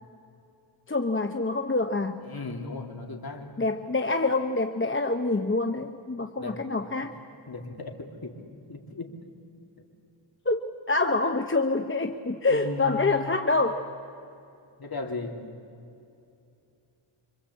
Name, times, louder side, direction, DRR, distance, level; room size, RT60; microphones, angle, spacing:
voice 1, 0.9-2.2 3.6-7.1 10.4-13.8, left 3 dB, 25° left, 5 dB, 1.0 m, -26 dB
voice 2, 2.2-3.5 6.4-6.9 7.5-8.4 8.7-9.1 9.8-9.9 12.5-13.2 14.8-15.4, left 3 dB, 50° left, 2 dB, 3.1 m, -37 dB
26.5 x 25.0 x 8.4 m, 2.6 s
wide cardioid pair, 110°, 49 cm